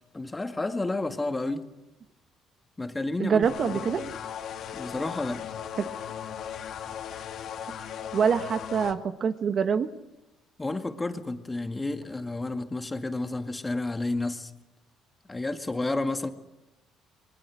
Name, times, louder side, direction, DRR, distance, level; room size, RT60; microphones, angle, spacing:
voice 1, 0.1-1.7 2.8-3.8 4.7-5.4 10.6-14.5 15.3-16.3, left 2 dB, 15° left, 7 dB, 1.9 m, -31 dB
voice 2, 3.2-4.1 5.8-5.9 8.1-9.9 13.3-13.4, right 6 dB, 50° right, 10 dB, 1.3 m, -25 dB
sound 1, 3.4-9.0, left 8 dB, 65° left, 2.1 m, -37 dB
27.0 x 21.5 x 6.3 m, 0.96 s
cardioid pair, 95°, 0 cm